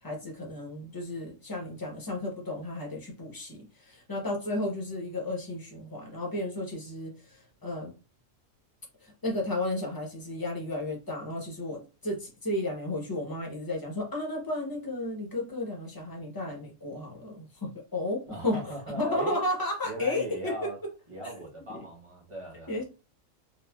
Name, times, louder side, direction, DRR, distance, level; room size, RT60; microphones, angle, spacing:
voice 1, 0.0-7.9 9.0-18.6 19.0-20.7 21.2-21.3 22.7-22.8, left 1 dB, 25° left, 0.5 m, -33 dB
voice 2, 18.3-19.4 19.8-20.8 21.1-22.8, right 1 dB, 25° right, 0.8 m, -39 dB
3.8 x 2.1 x 2.2 m
omnidirectional pair, 1.4 m